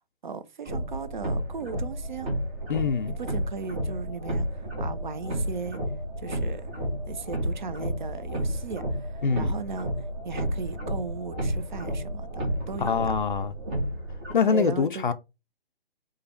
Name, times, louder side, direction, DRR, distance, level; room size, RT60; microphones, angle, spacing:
voice 1, 0.2-2.3 3.1-5.8 6.2-6.7 7.1-9.9 10.2-12.4 12.7-13.0 14.5-15.1, right 4 dB, 50° right, 0.6 m, -37 dB
sound 1, 0.7-14.3, equal, 10° right, 0.4 m, -31 dB
voice 2, 2.7-3.1 9.2-9.5 12.8-13.5 14.3-15.1, left 6 dB, 55° left, 0.5 m, -24 dB
4.8 x 2.3 x 4.4 m
figure-of-eight pair, 135°, 30 cm